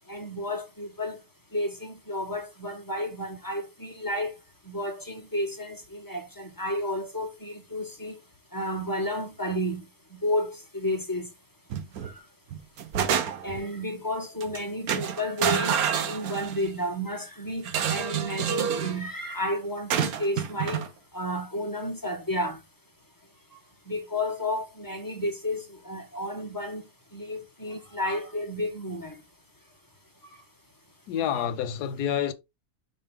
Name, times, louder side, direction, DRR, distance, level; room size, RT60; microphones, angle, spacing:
voice 1, 0.1-1.2 1.5-4.3 4.7-8.2 8.5-9.8 10.1-11.3 12.0-12.2 13.4-20.8 21.1-22.6 23.9-26.8 27.1-29.2, left 1 dB, 15° left, 1.4 m, -32 dB
sound 1, 11.7-12.1 12.5-13.6 14.4-14.6 14.9-16.7 17.6-19.0 19.9-20.9, right 8 dB, 70° right, 1.3 m, -28 dB
voice 2, 31.1-32.3, left 9 dB, 90° left, 1.3 m, -28 dB
6.5 x 4.1 x 3.5 m
omnidirectional pair, 1.7 m